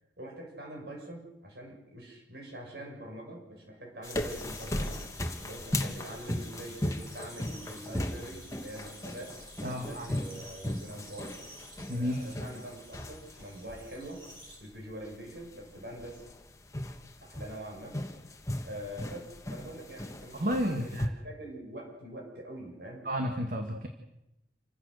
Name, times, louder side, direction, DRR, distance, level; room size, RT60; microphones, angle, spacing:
voice 1, 0.2-5.0 5.4-11.4 12.0-14.3 14.6-16.2 17.2-18.0 18.6-21.0 21.2-23.1, right 1 dB, 65° right, -1 dB, 6.9 m, -44 dB
sound 1, 4.0-21.1, left 1 dB, 15° left, 1.4 m, -38 dB
sound 2, 4.0-14.6, right 1 dB, 25° right, 6.1 m, -52 dB
voice 2, 9.6-10.1 11.9-12.2 20.3-21.1 23.1-23.9, equal, 45° right, 4 dB, 1.9 m, -31 dB
28.0 x 16.0 x 6.5 m, 0.90 s
head